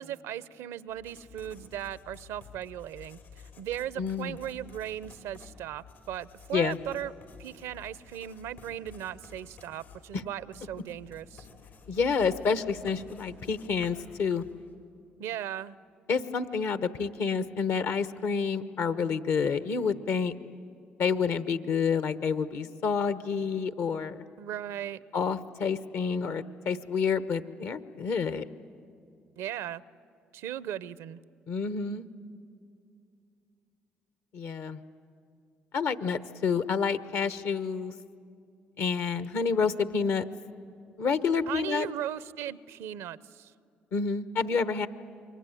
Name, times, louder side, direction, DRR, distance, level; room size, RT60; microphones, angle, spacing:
voice 1, 0.0-7.1 7.4-11.5 15.2-15.8 24.4-25.0 29.4-29.8 30.3-31.2 41.5-43.5, right 11 dB, 80° right, 19 dB, 0.6 m, -37 dB
Writing, 0.9-14.7, left 6 dB, 85° left, 4.6 m, -52 dB
voice 2, 4.0-4.4 6.5-6.8 11.9-14.4 16.1-20.3 21.0-24.2 25.1-28.4 31.5-32.0 34.3-34.8 35.7-37.9 38.8-40.2 41.0-41.9 43.9-44.9, left 5 dB, 70° left, 13 dB, 1.0 m, -28 dB
27.5 x 23.0 x 9.1 m, 2.5 s
hypercardioid pair, 55°, 5 cm